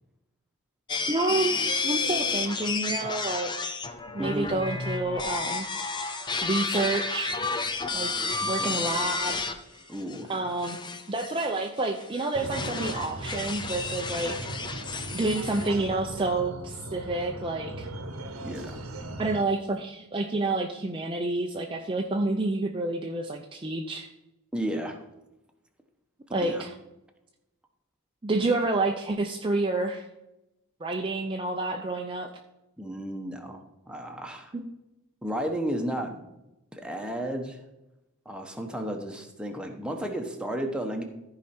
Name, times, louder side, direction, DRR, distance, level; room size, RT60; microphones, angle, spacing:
sound 1, 0.9-9.5 9.9-10.2 10.6-15.7, left 4 dB, 20° left, 0.6 m, -31 dB
voice 1, 1.1-3.8 4.1-5.7 6.4-7.3 7.9-8.1 8.4-9.4 10.3-10.8 11.1-14.4 15.1-17.9 19.2-24.1 26.3-26.7 28.2-30.1 30.8-32.3 34.5-34.6, right 2 dB, 25° right, 2 dB, 0.6 m, -29 dB
voice 2, 4.2-4.5 8.4-8.8 9.9-10.5 18.4-18.8 24.5-25.0 26.3-26.7 32.8-34.5 35.2-36.2 36.7-37.6 38.2-41.0, right 1 dB, 5° right, 3 dB, 1.0 m, -33 dB
sound 2, 12.3-19.4, right 1 dB, 70° right, 1.1 m, -38 dB
14.0 x 5.0 x 4.3 m, 0.92 s
head